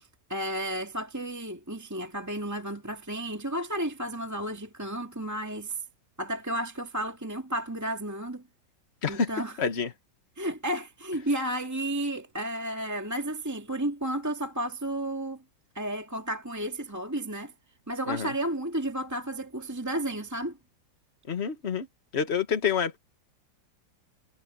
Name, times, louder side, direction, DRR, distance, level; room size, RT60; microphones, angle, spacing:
voice 1, 0.0-5.8 6.2-8.4 9.1-9.5 10.4-15.4 15.7-17.5 17.9-20.6, right 1 dB, 10° right, 1.9 m, -32 dB
voice 2, 9.0-9.3 9.6-9.9 18.1-18.3 21.3-21.9 22.1-23.0, left 6 dB, 35° left, 1.6 m, -28 dB
omnidirectional pair, 2.1 m